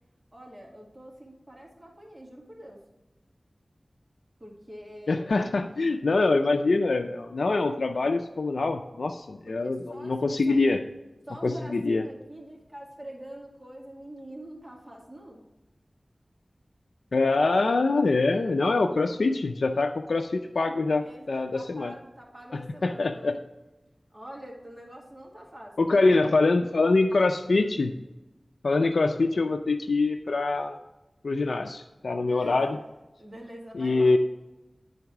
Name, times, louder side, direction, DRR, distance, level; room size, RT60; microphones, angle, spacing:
voice 1, 0.3-2.8 4.4-5.3 9.5-10.6 11.3-15.4 21.0-23.4 24.1-25.8 32.2-32.8 33.2-34.2, right 1 dB, 25° right, -2 dB, 2.1 m, -45 dB
voice 2, 5.1-10.8 11.4-12.0 17.1-21.9 22.5-23.4 25.8-27.9 28.6-30.8 31.2-32.8 33.8-34.2, left 3 dB, 90° left, 5 dB, 0.4 m, -24 dB
9.9 x 3.9 x 4.6 m, 1.0 s
wide cardioid pair, 55°, 0 cm